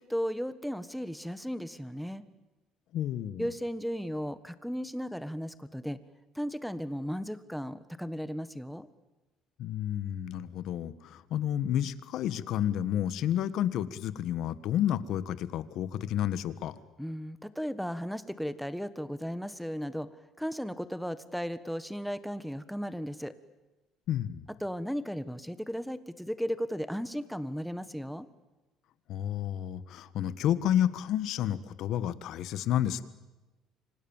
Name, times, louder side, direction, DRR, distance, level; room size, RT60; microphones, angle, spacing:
voice 1, 0.0-2.2 3.4-6.0 6.3-8.9 17.0-20.1 20.4-23.3 24.6-28.3, equal, ahead, 13 dB, 1.4 m, -35 dB
voice 2, 2.9-3.5 9.6-16.7 24.1-24.4 29.1-33.0, left 11 dB, 65° left, 14 dB, 1.5 m, -30 dB
29.5 x 25.5 x 7.3 m, 1.1 s
cardioid pair, 125°, 0 cm